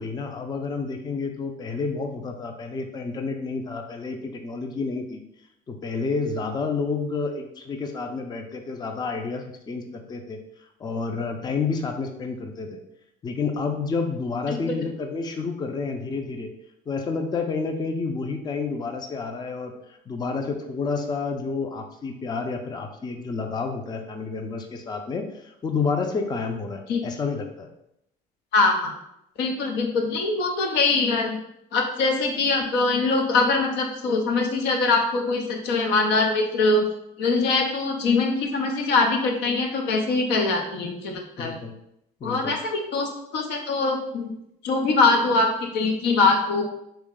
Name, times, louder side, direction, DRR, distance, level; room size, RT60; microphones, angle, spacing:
voice 1, 0.0-5.2 5.7-10.4 10.8-12.8 13.2-16.5 16.9-27.7 41.4-41.7 42.2-42.5, left 4 dB, 25° left, 5 dB, 0.4 m, -30 dB
voice 2, 28.5-28.9 29.4-31.4 31.7-36.9 37.2-41.6 42.2-44.3 44.6-46.6, left 3 dB, 80° left, 3 dB, 0.7 m, -23 dB
3.3 x 3.0 x 3.7 m, 0.79 s
cardioid pair, 110°, 17 cm